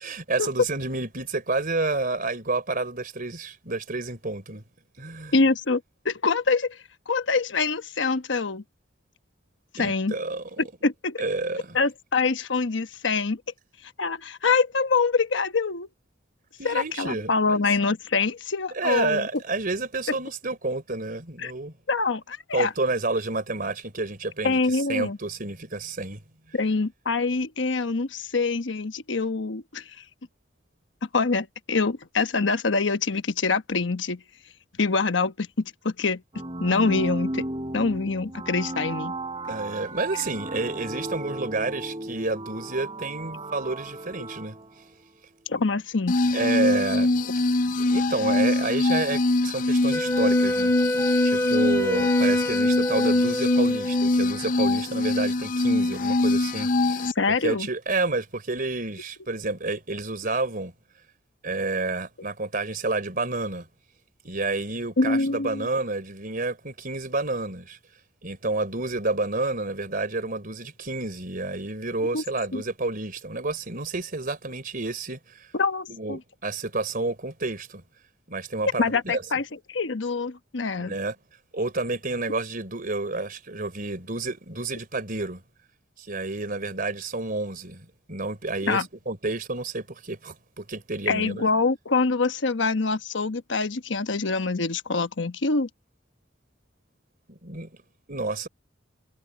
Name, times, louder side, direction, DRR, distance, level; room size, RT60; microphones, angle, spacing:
voice 1, 0.0-4.6 5.0-5.3 9.8-10.4 11.2-11.8 16.6-17.6 18.7-21.7 22.5-24.6 24.9-26.2 39.5-44.6 46.3-47.1 47.8-50.7 51.2-57.1 57.4-60.7 61.4-63.7 64.2-67.8 68.2-75.5 75.9-77.8 78.3-79.2 80.8-81.1 81.5-85.4 86.0-91.5 97.3-97.7 98.1-98.5, right 3 dB, 50° right, 3.8 m, -29 dB
voice 2, 5.3-8.6 9.7-10.1 10.6-11.2 11.7-13.4 14.0-15.9 16.6-19.3 21.4-21.5 21.9-22.7 24.4-25.2 26.5-30.0 31.1-34.2 34.8-36.2 36.6-37.4 37.7-39.1 45.5-46.2 57.1-57.7 65.0-65.7 72.1-72.2 72.5-72.6 75.5-76.2 78.8-80.9 88.7-88.9 91.1-95.7, left 4 dB, 80° left, 1.1 m, -25 dB
sound 1, 36.3-45.0, right 1 dB, 30° right, 3.4 m, -34 dB
sound 2, 46.1-57.1, left 2 dB, 45° left, 0.6 m, -23 dB
Wind instrument woodwind instrument, 49.9-54.2, left 1 dB, 15° left, 1.9 m, -27 dB
head